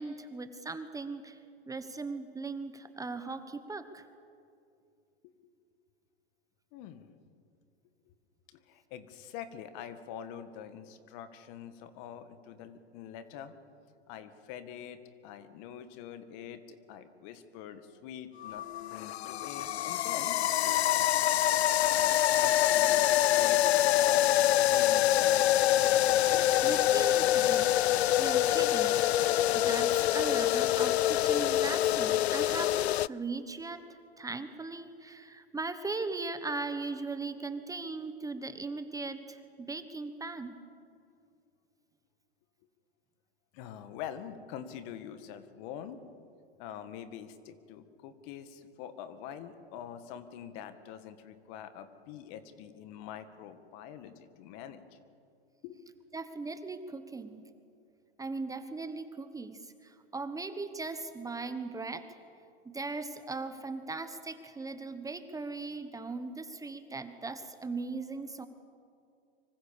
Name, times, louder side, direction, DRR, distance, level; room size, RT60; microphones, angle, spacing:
voice 1, 0.0-1.4 1.7-4.1 26.6-27.7 28.2-29.0 29.5-33.8 34.2-40.5 56.1-57.4 58.2-62.0 62.6-68.5, right 3 dB, 10° right, 9 dB, 1.3 m, -38 dB
voice 2, 6.7-7.1 8.1-8.2 8.5-13.5 14.1-21.1 21.9-25.5 26.0-26.5 43.5-46.0 46.6-55.0 55.6-55.8, left 9 dB, 50° left, 11 dB, 2.0 m, -45 dB
sound 1, 18.4-33.1, left 13 dB, 80° left, 0.5 m, -25 dB
25.5 x 24.0 x 7.0 m, 2.5 s
hypercardioid pair, 110°, 32 cm